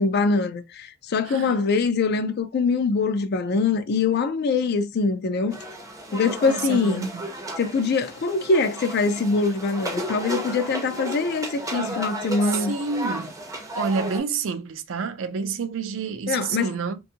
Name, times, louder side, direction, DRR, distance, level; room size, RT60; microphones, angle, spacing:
voice 1, 0.0-5.6 6.1-7.1 7.6-12.7 16.3-16.7, left 4 dB, 55° left, 0.4 m, -23 dB
voice 2, 1.2-1.6 6.4-7.2 11.7-12.0 12.4-13.3 13.8-17.0, right 5 dB, 70° right, 0.4 m, -29 dB
sound 1, 5.5-14.2, right 1 dB, 15° right, 0.5 m, -34 dB
2.6 x 2.3 x 2.7 m
head